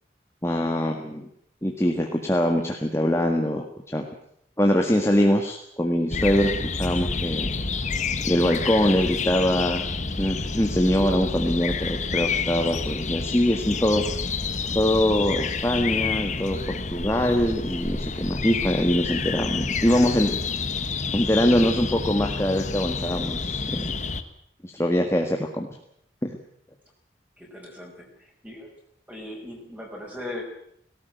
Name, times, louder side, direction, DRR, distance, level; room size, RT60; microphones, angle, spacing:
voice 1, 0.4-1.3 1.6-4.0 4.6-6.5 6.8-7.5 8.3-9.8 10.2-14.0 14.8-20.3 21.1-23.9 24.6-25.7 26.2-26.3, equal, 15° left, 3 dB, 1.8 m, -23 dB
sound 1, 6.1-24.2, left 4 dB, 40° left, 1.4 m, -29 dB
voice 2, 27.4-28.7 29.1-30.4, left 1 dB, 10° right, 0 dB, 5.8 m, -39 dB
18.5 x 18.0 x 9.2 m, 0.71 s
head